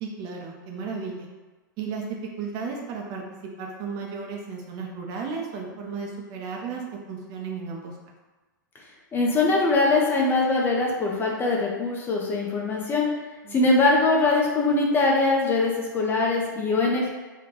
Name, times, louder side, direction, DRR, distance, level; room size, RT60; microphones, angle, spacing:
voice 1, 0.0-1.3 1.8-2.0 2.4-3.2 3.6-7.9 13.4-13.7, right 5 dB, 35° right, 0 dB, 0.6 m, -34 dB
voice 2, 9.1-13.1 13.5-17.1, left 3 dB, 20° left, -2 dB, 0.6 m, -22 dB
3.6 x 2.3 x 3.1 m, 1.3 s
figure-of-eight pair, 105°, 11 cm